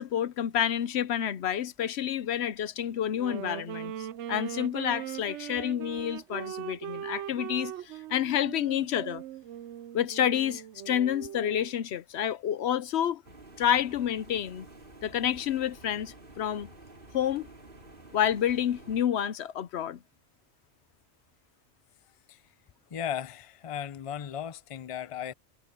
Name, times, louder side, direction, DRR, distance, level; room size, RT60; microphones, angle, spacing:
voice 1, 0.0-9.2 9.9-13.2 13.6-14.7 15.0-16.7 17.1-17.5 18.1-20.0, left 10 dB, 70° left, 0.9 m, -29 dB
Wind instrument woodwind instrument, 3.1-11.8, right 11 dB, 90° right, 0.9 m, -40 dB
sound 1, 13.2-19.0, right 2 dB, 50° right, 3.2 m, -51 dB
voice 2, 22.9-25.3, left 9 dB, 35° left, 0.6 m, -36 dB
omnidirectional pair, 1.2 m